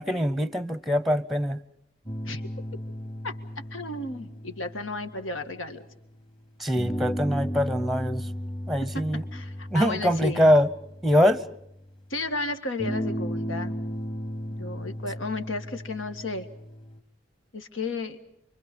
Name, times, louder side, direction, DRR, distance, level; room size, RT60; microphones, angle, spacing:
voice 1, 0.0-1.6 6.6-8.3 8.7-9.2 9.7-10.7 11.0-11.4, equal, ahead, 0.8 m, -23 dB
sound 1, 2.1-6.0 6.8-11.8 12.8-17.0, equal, 25° left, 1.9 m, -35 dB
voice 2, 3.2-5.9 8.8-10.5 12.1-13.8 14.6-16.5 17.5-18.2, left 2 dB, 85° left, 1.9 m, -33 dB
29.0 x 24.0 x 5.4 m
head